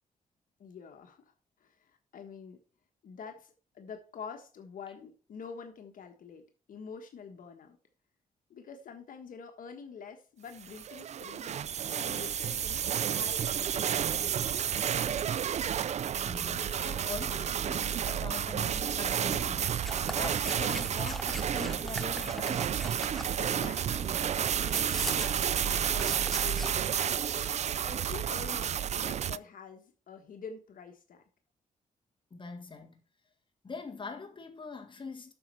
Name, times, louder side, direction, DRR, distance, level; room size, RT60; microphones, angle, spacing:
voice 1, 0.6-1.3 1.6-2.6 3.0-7.8 8.5-11.6 11.9-15.2 23.4-24.1 24.6-27.2 27.8-31.2, left 6 dB, 75° left, 1.3 m, -47 dB
sound 1, 10.6-29.4, right 9 dB, 55° right, 0.4 m, -31 dB
voice 2, 16.2-22.8 32.3-33.0 33.6-35.3, left 4 dB, 35° left, 1.8 m, -43 dB
sound 2, 19.8-26.8, equal, ahead, 0.8 m, -42 dB
8.6 x 6.3 x 4.6 m
cardioid pair, 85°, 14 cm